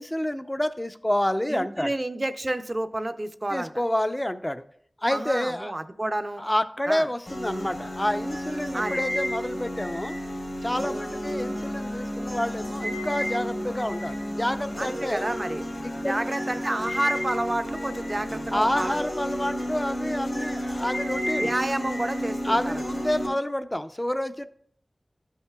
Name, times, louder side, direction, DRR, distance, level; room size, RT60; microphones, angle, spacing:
voice 1, 0.0-1.9 3.5-4.6 5.0-5.7 6.4-10.2 10.6-15.2 15.8-16.2 18.5-21.6 22.4-24.5, left 1 dB, 20° left, 10 dB, 0.5 m, -28 dB
voice 2, 1.5-3.7 5.1-6.4 6.9-7.1 8.7-9.0 14.8-15.6 15.9-19.0 21.4-22.7, right 1 dB, 35° right, 10 dB, 0.5 m, -30 dB
sound 1, 7.3-23.3, equal, 75° left, 2.6 m, -31 dB
12.5 x 5.6 x 2.3 m, 0.64 s
wide cardioid pair, 55°, 0 cm